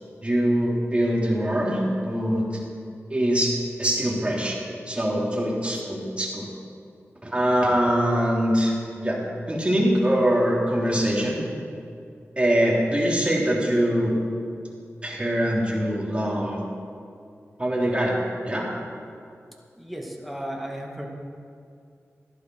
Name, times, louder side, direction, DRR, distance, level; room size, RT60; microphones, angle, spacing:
voice 1, 0.2-2.5 3.1-3.5 3.8-4.6 4.9-6.5 7.2-9.2 9.5-11.4 12.4-14.1 15.0-16.6 17.6-18.1 18.5-18.7, equal, 20° right, -4 dB, 3.6 m, -23 dB
voice 2, 19.8-21.1, equal, ahead, 0 dB, 2.2 m, -34 dB
14.0 x 11.5 x 4.9 m, 2.4 s
cardioid pair, 50°, 5 cm